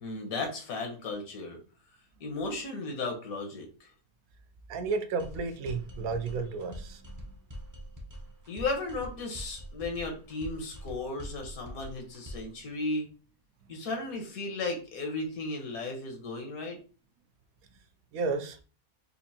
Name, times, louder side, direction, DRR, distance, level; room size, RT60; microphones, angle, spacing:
voice 1, 0.0-1.6 2.2-3.9 8.5-13.1 13.7-16.8, left 3 dB, 75° left, 3 dB, 1.4 m, -35 dB
voice 2, 4.7-7.2 18.1-18.6, right 4 dB, 80° right, 8 dB, 1.0 m, -32 dB
sound 1, 5.2-12.6, equal, 30° right, 0.3 m, -44 dB
4.4 x 2.5 x 2.8 m, 0.36 s
omnidirectional pair, 1.5 m